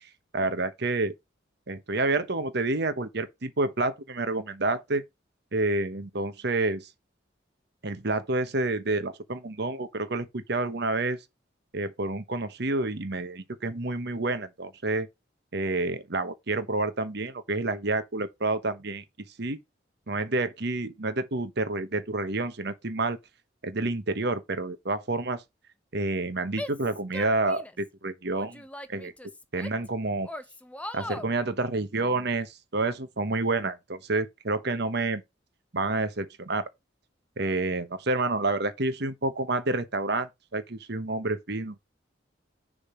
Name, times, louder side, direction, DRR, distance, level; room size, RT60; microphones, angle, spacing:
voice 1, 0.3-1.1 1.7-5.0 5.5-6.9 7.8-11.2 11.7-15.1 15.5-19.0 19.4-19.6 20.1-23.2 23.6-25.4 25.9-28.6 28.9-29.1 29.5-30.3 30.9-35.2 35.7-36.7 37.4-41.8, right 2 dB, 60° right, 1.1 m, -29 dB
Female speech woman speaking / Yell, 26.5-27.9 28.3-29.9 30.2-31.3, left 1 dB, 5° left, 0.7 m, -40 dB
6.9 x 3.8 x 6.2 m
head